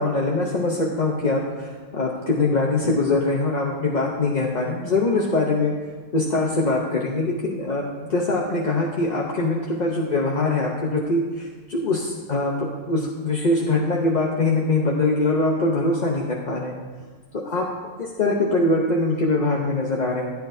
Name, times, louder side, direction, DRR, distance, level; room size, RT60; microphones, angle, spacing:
voice 1, 0.0-5.7 6.1-16.8 17.4-17.7 18.0-20.3, left 2 dB, 35° left, -2 dB, 0.7 m, -23 dB
15.0 x 9.4 x 2.7 m, 1.4 s
omnidirectional pair, 1.7 m